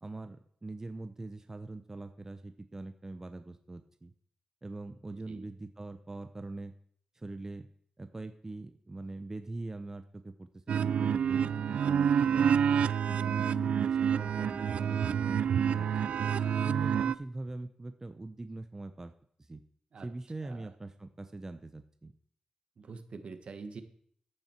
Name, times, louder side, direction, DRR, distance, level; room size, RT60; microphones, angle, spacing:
voice 1, 0.0-4.1 4.6-6.7 7.1-7.7 8.0-12.6 13.1-16.1 16.6-19.1 19.4-19.6 20.0-22.1, right 2 dB, 25° right, 8 dB, 0.7 m, -42 dB
sound 1, 10.7-17.1, right 8 dB, 80° right, 0.3 m, -28 dB
voice 2, 13.4-13.7 19.9-20.1 20.4-20.7 22.8-23.8, right 4 dB, 60° right, 8 dB, 1.3 m, -44 dB
11.0 x 8.9 x 4.5 m, 0.62 s
cardioid pair, 80°, 2 cm